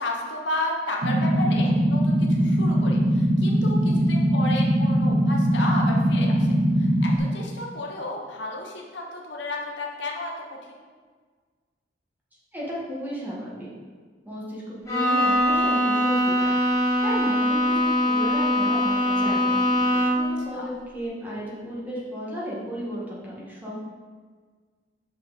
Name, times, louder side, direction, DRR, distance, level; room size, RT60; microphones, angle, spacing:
voice 1, 0.0-10.8 20.4-20.7, left 1 dB, 65° left, 0 dB, 1.0 m, -33 dB
sound 1, 1.0-7.2, equal, 40° right, 0.6 m, -21 dB
voice 2, 12.5-13.7 14.2-23.7, equal, 10° right, -7 dB, 1.7 m, -34 dB
Bowed string instrument, 14.9-20.4, equal, 15° left, 1.6 m, -22 dB
6.0 x 5.7 x 4.1 m, 1.5 s
head